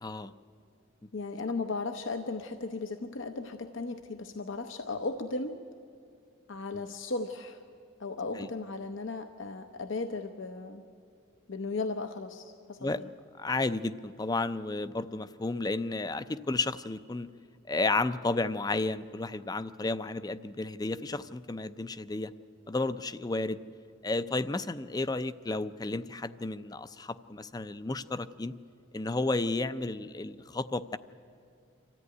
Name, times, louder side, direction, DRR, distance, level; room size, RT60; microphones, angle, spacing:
voice 1, 0.0-0.3 6.7-6.9 8.4-8.5 12.8-13.0 13.4-17.3 17.7-22.3 22.7-23.6 24.0-28.5 28.9-31.0, left 2 dB, 20° left, 13 dB, 0.4 m, -32 dB
voice 2, 1.1-5.6 6.5-7.6 8.0-10.8 11.5-13.1, left 3 dB, 70° left, 7 dB, 0.8 m, -36 dB
26.0 x 14.0 x 9.5 m, 2.4 s
head